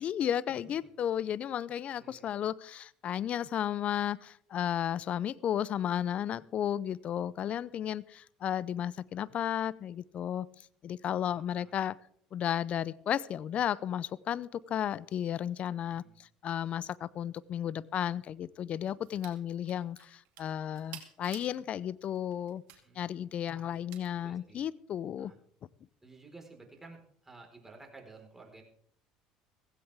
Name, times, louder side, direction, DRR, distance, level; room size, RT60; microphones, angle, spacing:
voice 1, 0.0-10.5 10.8-12.0 12.3-16.0 16.4-22.6 23.0-25.3, left 10 dB, 50° left, 21 dB, 0.6 m, -33 dB
voice 2, 1.9-2.3 11.3-11.7 15.7-16.2 22.8-23.8 24.1-24.7 25.2-25.4 26.0-28.6, right 3 dB, 10° right, 1 dB, 4.5 m, -54 dB
sound 1, 19.0-19.4 19.6-21.6 22.1-22.8 23.9-24.0, right 12 dB, 70° right, 2.4 m, -50 dB
16.0 x 16.0 x 3.6 m, 0.63 s
hypercardioid pair, 75°, 3 cm